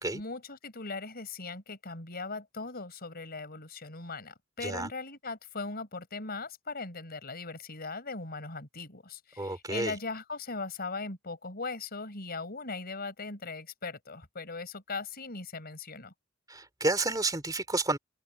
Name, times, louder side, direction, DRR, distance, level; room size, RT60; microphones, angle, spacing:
voice 1, 0.1-16.1, left 3 dB, 50° left, 4.8 m, -39 dB
voice 2, 9.4-9.9 16.5-18.0, right 2 dB, 20° right, 3.0 m, -30 dB
open air
head